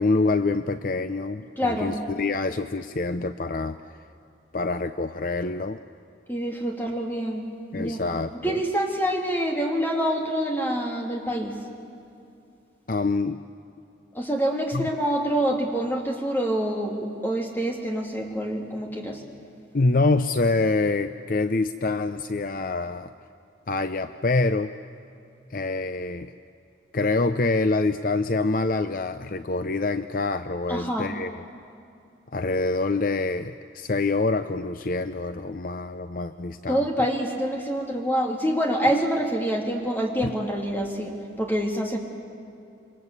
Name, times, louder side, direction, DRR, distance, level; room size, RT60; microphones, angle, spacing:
voice 1, 0.0-3.8 4.5-5.8 7.7-8.6 12.9-13.4 14.7-14.9 19.7-23.1 23.7-24.7 25.5-26.3 26.9-31.4 32.3-36.9 40.2-40.3, left 3 dB, 50° left, 10 dB, 0.6 m, -26 dB
voice 2, 1.6-1.9 6.3-7.4 7.7-8.0 8.4-11.5 14.1-19.2 30.7-31.1 36.7-42.0, equal, 10° left, 0 dB, 2.8 m, -26 dB
27.0 x 24.0 x 8.2 m, 2.6 s
head